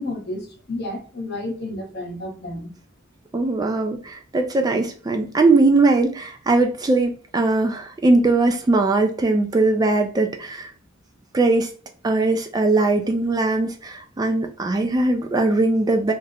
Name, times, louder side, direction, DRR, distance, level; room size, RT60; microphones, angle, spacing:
voice 1, 0.0-2.7, left 1 dB, 55° left, 0.9 m, -31 dB
voice 2, 3.3-10.7 11.3-11.7 12.0-16.1, right 2 dB, 20° right, 0.3 m, -20 dB
3.3 x 2.5 x 2.7 m
head